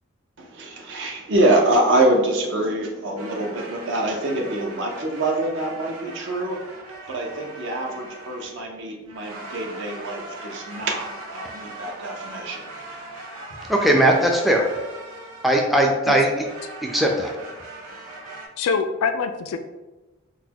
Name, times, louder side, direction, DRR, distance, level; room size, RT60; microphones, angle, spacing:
voice 1, 0.4-6.6 7.1-12.7, right 1 dB, 55° right, 1 dB, 0.6 m, -25 dB
sound 1, 3.2-8.7 9.1-15.8 16.3-18.5, right 2 dB, 90° right, 0.8 m, -40 dB
voice 2, 13.7-14.6 15.4-16.5 16.9-17.3, right 1 dB, ahead, 0 dB, 0.3 m, -19 dB
voice 3, 18.6-19.6, left 5 dB, 80° left, 8 dB, 0.3 m, -24 dB
3.9 x 2.1 x 2.9 m, 1.1 s
head